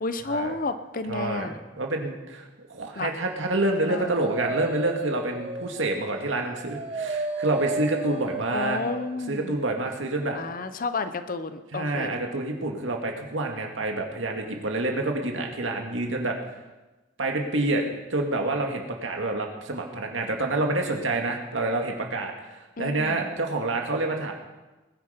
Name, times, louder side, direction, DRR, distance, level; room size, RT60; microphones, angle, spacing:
voice 1, 0.0-1.6 3.0-3.1 3.9-4.1 8.5-9.5 10.3-12.2 22.8-23.3, left 3 dB, 45° left, 10 dB, 0.8 m, -31 dB
voice 2, 1.1-1.5 1.7-8.8 9.3-10.4 11.7-16.4 17.2-17.8 18.1-24.3, right 2 dB, 70° right, 2 dB, 2.1 m, -28 dB
Dog, 3.6-9.2, right 2 dB, 30° right, 1.2 m, -34 dB
20.5 x 9.7 x 5.2 m, 1.1 s
head